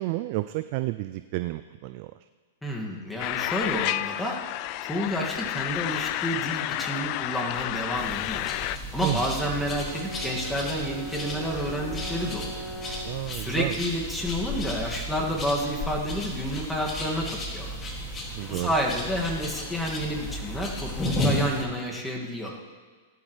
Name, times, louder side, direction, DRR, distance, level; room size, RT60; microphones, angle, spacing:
voice 1, 0.0-2.1 9.0-9.3 13.0-13.8 18.3-18.7, right 18 dB, 50° right, 11 dB, 0.4 m, -30 dB
voice 2, 2.6-4.4 4.8-8.5 8.9-12.7 13.3-17.8 18.5-22.6, equal, 5° left, -2 dB, 2.2 m, -30 dB
sound 1, 3.2-8.8, left 16 dB, 45° left, 0.4 m, -30 dB
sound 2, 7.9-21.7, left 1 dB, 25° left, 2.3 m, -33 dB
Brass instrument, 8.9-13.2, right 2 dB, 20° right, 2.0 m, -40 dB
17.5 x 11.5 x 3.3 m, 1.4 s
hypercardioid pair, 115°, 0 cm